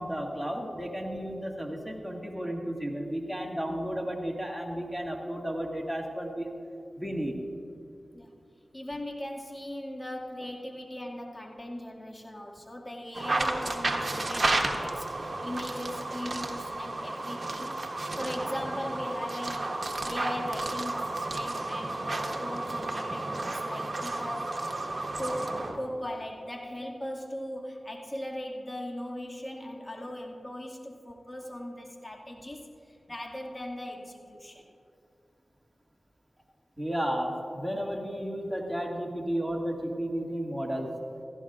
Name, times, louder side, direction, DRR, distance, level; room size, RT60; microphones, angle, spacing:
voice 1, 0.0-6.5 6.9-7.4 36.8-40.9, equal, 5° right, -1 dB, 2.1 m, -33 dB
voice 2, 8.7-17.8 18.2-24.6 25.2-34.7, left 1 dB, 30° left, 0 dB, 2.1 m, -39 dB
sound 1, 13.1-25.8, right 2 dB, 50° right, 1.4 m, -32 dB
16.5 x 15.5 x 2.5 m, 2.5 s
cardioid pair, 40°, 0 cm